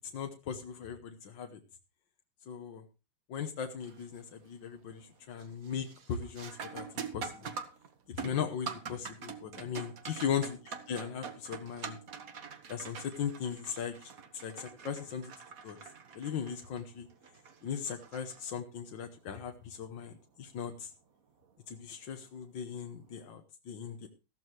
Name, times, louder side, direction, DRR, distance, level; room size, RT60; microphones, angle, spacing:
voice 1, 0.1-1.6 2.5-2.8 3.3-6.9 7.1-7.5 8.1-9.9 10.2-10.4 10.9-12.0 12.7-14.1 14.4-15.3 15.6-15.8 16.2-17.1 17.6-20.9 21.7-24.1, left 7 dB, 85° left, 5 dB, 1.8 m, -38 dB
sound 1, 3.8-4.2 4.6-5.1 5.4-18.9 21.4-21.5 22.3-22.6, right 6 dB, 50° right, 1.6 m, -45 dB
14.5 x 13.5 x 3.1 m, 0.30 s
omnidirectional pair, 2.0 m